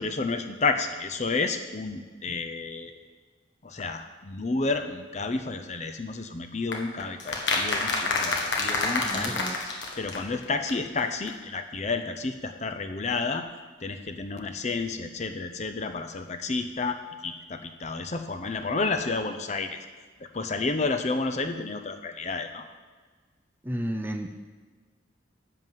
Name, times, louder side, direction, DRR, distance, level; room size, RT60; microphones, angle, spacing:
voice 1, 0.0-3.0 3.6-9.4 10.0-13.4 13.8-19.8 20.3-22.6, left 3 dB, 35° left, 7 dB, 0.6 m, -31 dB
sound 1, 6.7-10.4 10.7-10.8 11.0-11.1 11.3-11.4, left 3 dB, 65° left, 1.3 m, -28 dB
voice 2, 9.0-9.6 23.6-24.3, right 1 dB, 10° right, 5 dB, 0.4 m, -32 dB
10.5 x 4.0 x 7.4 m, 1.5 s
head